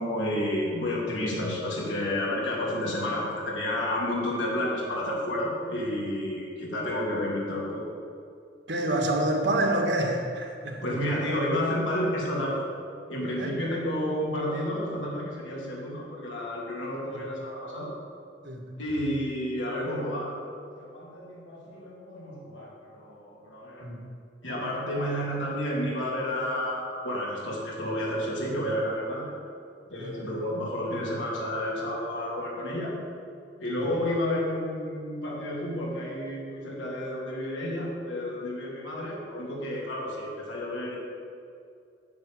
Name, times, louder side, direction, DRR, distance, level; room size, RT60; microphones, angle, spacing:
voice 1, 0.0-7.9 10.8-12.7 13.1-17.9 18.8-23.9 24.4-29.4 29.9-32.9 33.6-41.0, left 1 dB, 85° left, -4 dB, 3.3 m, -31 dB
voice 2, 8.7-10.8 13.3-13.5 15.7-15.8 17.1-17.2 18.4-18.7 23.8-24.0 30.0-30.2 33.7-33.9, right 1 dB, 65° right, 1 dB, 1.9 m, -28 dB
9.5 x 7.3 x 8.9 m, 2.4 s
head